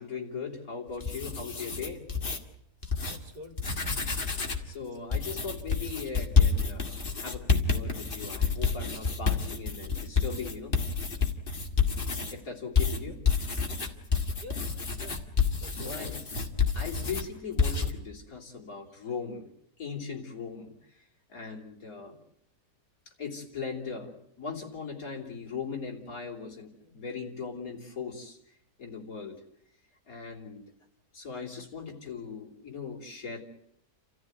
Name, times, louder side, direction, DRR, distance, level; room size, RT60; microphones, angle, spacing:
voice 1, 0.0-2.0 4.7-10.7 12.3-13.2 15.7-16.3 16.7-19.5 19.8-21.0 21.3-22.2 23.1-28.4 28.8-29.4 30.1-30.6 31.1-33.4, left 5 dB, 55° left, 0 dB, 3.9 m, -39 dB
sound 1, 0.9-2.4 2.8-3.2 3.5-4.7 5.1-12.3 12.8-17.3 17.6-17.9, left 5 dB, 30° left, 2.0 m, -28 dB
voice 2, 3.1-3.8 14.4-15.3 15.6-16.2, left 2 dB, 75° right, 5 dB, 3.3 m, -48 dB
29.5 x 14.0 x 9.5 m, 0.76 s
omnidirectional pair, 1.8 m